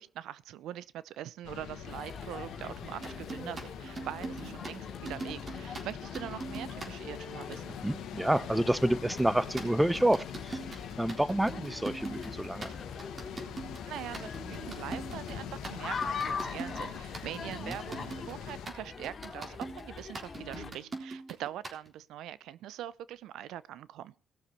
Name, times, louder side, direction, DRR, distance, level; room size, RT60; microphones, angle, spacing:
voice 1, 0.0-7.8 13.9-24.1, right 12 dB, 80° right, 0.6 m, -43 dB
sound 1, 1.4-18.7, left 10 dB, 85° left, 1.8 m, -44 dB
sound 2, 1.8-20.7, left 5 dB, 40° left, 2.8 m, -43 dB
sound 3, 3.0-6.9 9.2-21.9, right 3 dB, 30° right, 3.7 m, -42 dB
voice 2, 7.8-10.6 11.0-12.7 17.7-17.8, right 1 dB, 5° right, 0.8 m, -28 dB
19.0 x 6.9 x 4.2 m
cardioid pair, 85°, 0 cm